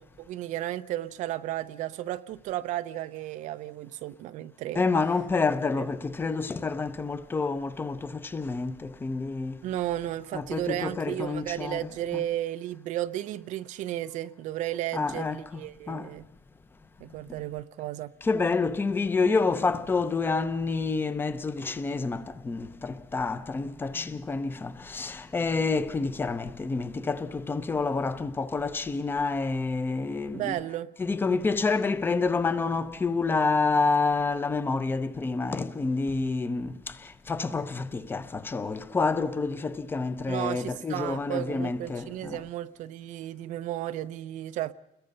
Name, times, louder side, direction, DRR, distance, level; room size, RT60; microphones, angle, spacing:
voice 1, 0.2-4.8 5.8-5.9 9.6-16.3 17.0-18.1 30.3-30.9 40.3-44.7, right 13 dB, 70° right, 0.7 m, -33 dB
voice 2, 4.8-9.6 10.3-11.8 12.1-12.2 14.9-15.6 15.9-16.1 18.2-30.6 31.0-42.4, left 4 dB, 15° left, 0.8 m, -28 dB
29.5 x 21.5 x 5.5 m
cardioid pair, 175°, 13 cm